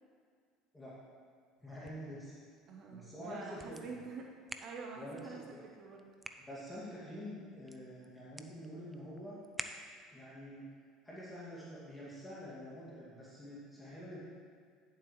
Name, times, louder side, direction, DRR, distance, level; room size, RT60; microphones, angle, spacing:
voice 1, 1.6-2.4 2.9-3.8 5.0-5.4 6.5-9.4 10.1-10.7 11.0-14.2, equal, 10° left, -8 dB, 2.1 m, -47 dB
sound 1, 1.6-10.3, right 1 dB, 10° right, 0.5 m, -52 dB
voice 2, 2.7-4.3 4.6-6.1, right 4 dB, 50° right, 1 dB, 0.9 m, -47 dB
10.5 x 7.4 x 3.1 m, 2.1 s
supercardioid pair, 100°, 0 cm